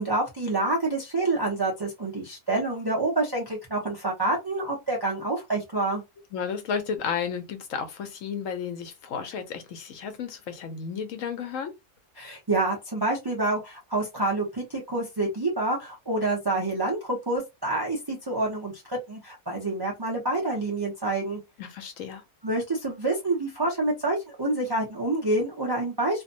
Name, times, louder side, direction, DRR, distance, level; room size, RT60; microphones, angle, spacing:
voice 1, 0.0-6.0 12.2-21.4 22.4-26.2, right 2 dB, 25° right, 0.5 m, -27 dB
voice 2, 6.3-11.7 21.6-22.2, left 6 dB, 85° left, 1.0 m, -33 dB
2.6 x 2.1 x 2.6 m
omnidirectional pair, 1.4 m